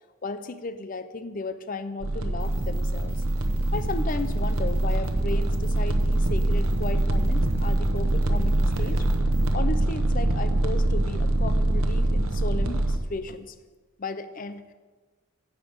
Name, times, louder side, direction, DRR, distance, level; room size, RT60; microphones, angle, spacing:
voice 1, 0.2-3.2 3.7-9.1 9.5-13.5 14.0-14.7, left 3 dB, 40° left, 11 dB, 0.5 m, -35 dB
sound 1, 2.0-13.0, right 1 dB, 70° right, 0.9 m, -24 dB
sound 2, 2.4-9.5, right 4 dB, 10° right, 2.2 m, -50 dB
10.0 x 8.3 x 5.1 m, 1.3 s
head